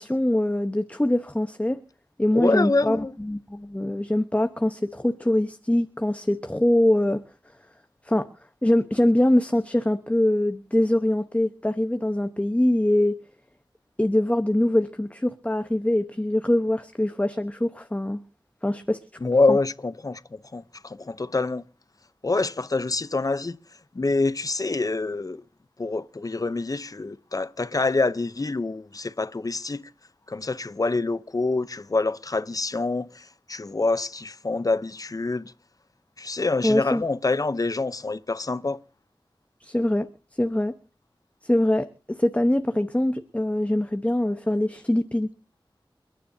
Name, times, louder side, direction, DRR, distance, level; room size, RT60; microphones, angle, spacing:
voice 1, 0.0-1.8 2.2-7.2 8.0-8.3 8.6-13.2 14.0-18.2 18.6-19.0 19.5-19.6 36.6-37.0 39.6-40.1 40.4-40.7 41.4-45.3, left 1 dB, 15° left, 1.0 m, -23 dB
voice 2, 2.3-3.1 19.2-21.6 22.2-23.6 23.9-25.4 25.8-29.8 30.3-35.5 36.2-38.8, left 3 dB, 45° left, 0.7 m, -26 dB
29.5 x 10.0 x 2.7 m
wide cardioid pair, 55°, 9 cm